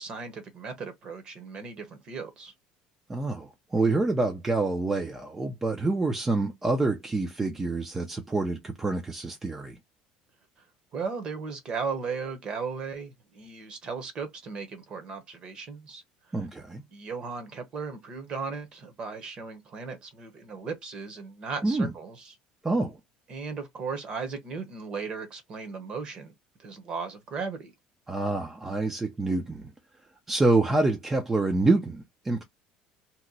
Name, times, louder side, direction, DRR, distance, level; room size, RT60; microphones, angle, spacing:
voice 1, 0.0-2.5 10.9-16.0 16.9-22.4 23.3-26.3 26.6-27.7, right 5 dB, 35° right, 1.0 m, -36 dB
voice 2, 3.1-9.8 16.3-16.8 21.6-21.9 22.6-23.0 28.1-29.7 30.3-32.4, right 2 dB, 15° right, 0.5 m, -27 dB
2.9 x 2.1 x 3.9 m
cardioid pair, 150°, 3 cm